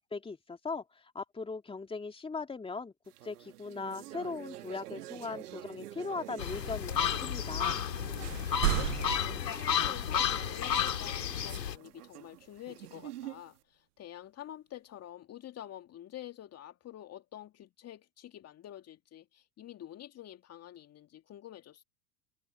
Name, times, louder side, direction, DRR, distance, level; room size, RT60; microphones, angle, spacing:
voice 1, 0.1-2.9 3.2-7.8, left 4 dB, 10° left, 2.7 m, -39 dB
sound 1, 3.1-13.6, right 14 dB, 65° right, 2.2 m, -48 dB
sound 2, 6.4-11.8, left 8 dB, 80° left, 2.5 m, -32 dB
sound 3, 7.7-7.9 8.2-10.3, right 21 dB, 50° right, 0.5 m, -34 dB
voice 2, 8.6-21.8, left 12 dB, 30° left, 2.3 m, -48 dB
hypercardioid pair, 95°, 49 cm